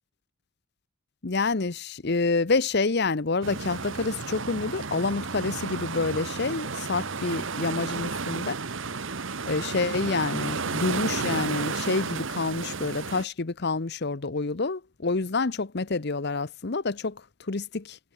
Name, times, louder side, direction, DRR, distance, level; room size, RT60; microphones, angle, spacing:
voice 1, 1.2-8.5 9.4-17.2 17.5-18.0, left 3 dB, 50° left, 0.8 m, -28 dB
sound 1, 3.4-13.2, right 4 dB, 60° right, 1.2 m, -32 dB
head